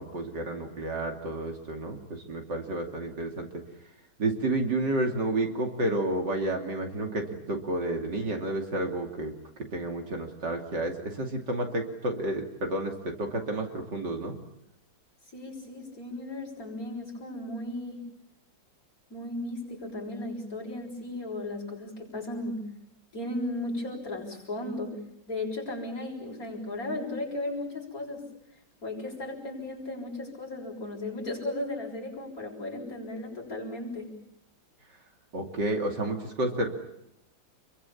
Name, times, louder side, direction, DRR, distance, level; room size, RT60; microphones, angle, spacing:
voice 1, 0.0-3.5 4.2-9.3 9.7-14.4 35.3-36.7, right 2 dB, 60° right, 3 dB, 3.4 m, -30 dB
voice 2, 15.3-18.0 19.1-22.7 23.1-25.0 25.3-28.3 28.8-34.1, left 2 dB, 45° left, -2 dB, 7.4 m, -35 dB
29.0 x 23.0 x 7.3 m, 0.81 s
omnidirectional pair, 2.1 m